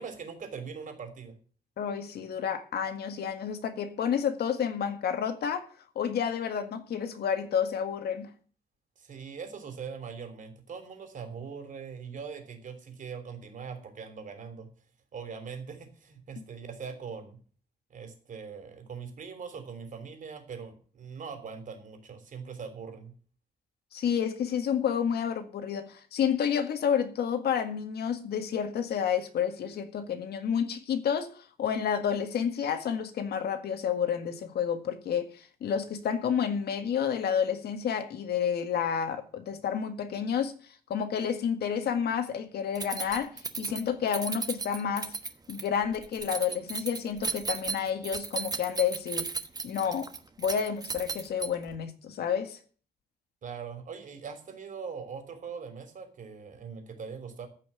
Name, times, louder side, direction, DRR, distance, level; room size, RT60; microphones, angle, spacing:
voice 1, 0.0-1.3 9.0-14.7 15.1-17.4 17.9-23.1 53.4-57.5, right 6 dB, 55° right, 3.3 m, -41 dB
voice 2, 1.8-5.7 6.0-8.3 23.9-40.5 40.9-45.1 45.5-49.3 49.6-50.1 50.4-52.6, left 8 dB, 80° left, 1.9 m, -30 dB
Keys jangling, 42.8-51.8, right 4 dB, 25° right, 1.1 m, -36 dB
14.5 x 5.7 x 8.9 m
cardioid pair, 135°, 16 cm